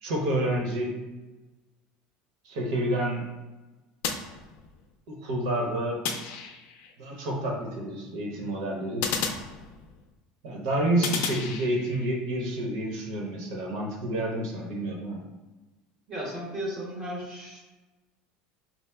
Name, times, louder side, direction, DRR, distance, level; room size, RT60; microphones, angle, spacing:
voice 1, 0.0-0.9 2.4-3.3 5.1-6.0 7.0-9.0 10.4-15.2, right 1 dB, 90° right, -1 dB, 1.0 m, -29 dB
sound 1, 4.0-5.0 6.0-6.9 9.0-10.1 11.0-12.1, left 6 dB, 70° left, 0.5 m, -33 dB
voice 2, 16.1-17.6, equal, 30° right, -3 dB, 0.8 m, -35 dB
4.3 x 2.1 x 3.4 m, 1.2 s
cardioid pair, 170°, 3 cm